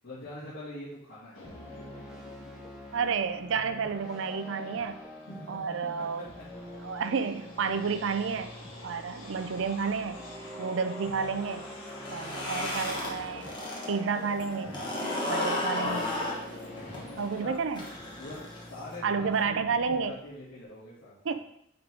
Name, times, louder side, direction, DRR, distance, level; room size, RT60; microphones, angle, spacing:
voice 1, 0.0-1.4 5.3-5.6 6.0-6.3 6.9-7.0 9.1-9.4 16.9-17.6 18.1-21.3, left 1 dB, 65° left, -11 dB, 2.4 m, -44 dB
sound 1, 1.3-3.2 3.6-17.5, left 1 dB, 80° left, 1.7 m, -47 dB
sound 2, 1.4-20.6, left 1 dB, 5° right, 0.9 m, -46 dB
voice 2, 2.9-5.0 5.5-6.3 6.8-8.5 8.8-10.2 10.6-11.6 12.1-13.5 13.9-14.7 15.3-16.1 17.2-17.8 19.0-20.1 21.3-21.4, right 5 dB, 65° right, 10 dB, 0.4 m, -30 dB
sound 3, 11.9-13.9 14.2-19.0, left 2 dB, 20° left, 1.4 m, -33 dB
9.3 x 3.7 x 3.8 m, 0.74 s
head